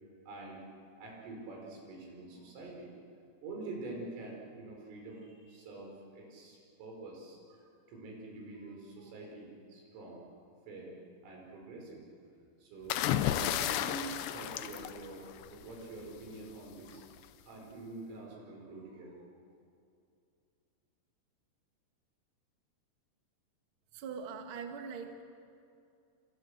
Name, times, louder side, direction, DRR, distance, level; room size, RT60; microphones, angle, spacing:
voice 1, 0.3-0.7 1.0-2.9 3.4-10.3 10.7-11.0 11.2-12.0 12.6-17.0 17.4-19.2, right 2 dB, 85° right, -1 dB, 7.7 m, -46 dB
sound 1, 12.9-15.7 16.9-17.2, left 12 dB, 75° left, 2.7 m, -33 dB
voice 2, 23.9-25.2, right 6 dB, 65° right, 5 dB, 1.3 m, -42 dB
29.0 x 26.0 x 6.6 m, 2.5 s
omnidirectional pair, 5.7 m